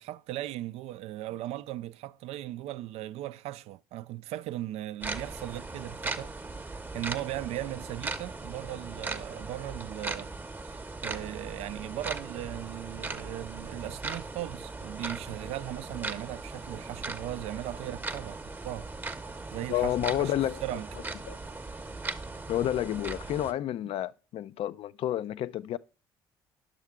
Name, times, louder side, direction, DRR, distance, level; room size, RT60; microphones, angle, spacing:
voice 1, 0.0-6.3 6.9-10.3 10.7-18.9 19.5-20.3 20.6-20.9 23.8-23.9, right 14 dB, 65° right, 0.4 m, -38 dB
sound 1, 5.0-23.5, right 3 dB, 15° right, 0.8 m, -39 dB
voice 2, 19.7-20.6 21.3-21.4 22.5-25.8, left 12 dB, 55° left, 0.4 m, -30 dB
9.9 x 6.3 x 3.6 m
hypercardioid pair, 55°, 12 cm